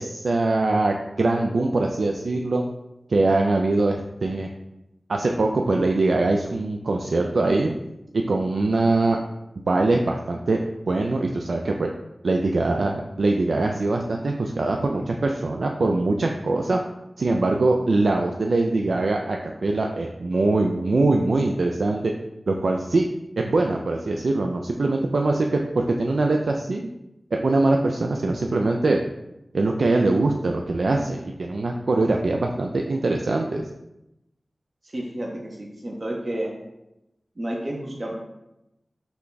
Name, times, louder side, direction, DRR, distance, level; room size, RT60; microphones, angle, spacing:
voice 1, 0.0-2.6 3.1-4.5 5.1-7.7 8.1-9.2 9.7-10.6 10.9-11.9 12.2-16.8 17.2-22.1 22.5-23.1 23.4-26.9 27.3-29.0 29.5-33.7, right 2 dB, 75° right, 2 dB, 0.3 m, -22 dB
voice 2, 34.8-36.5 37.4-38.2, right 1 dB, 40° right, -2 dB, 0.7 m, -31 dB
5.8 x 2.3 x 3.9 m, 0.92 s
wide cardioid pair, 90°, 0 cm